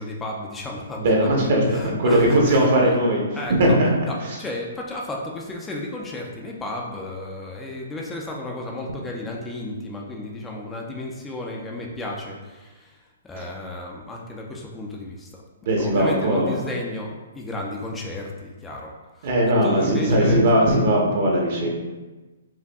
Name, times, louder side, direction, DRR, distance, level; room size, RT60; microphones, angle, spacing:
voice 1, 0.0-3.0 3.4-3.8 4.0-15.3 15.8-19.3 19.6-20.4, left 2 dB, 15° left, -1 dB, 0.5 m, -33 dB
voice 2, 1.0-3.2 3.5-3.9 4.2-4.4 13.4-13.5 15.6-16.6 19.2-21.7, right 1 dB, 55° right, -1 dB, 1.0 m, -19 dB
4.7 x 2.5 x 2.3 m, 1.2 s
figure-of-eight pair, 125°, 0 cm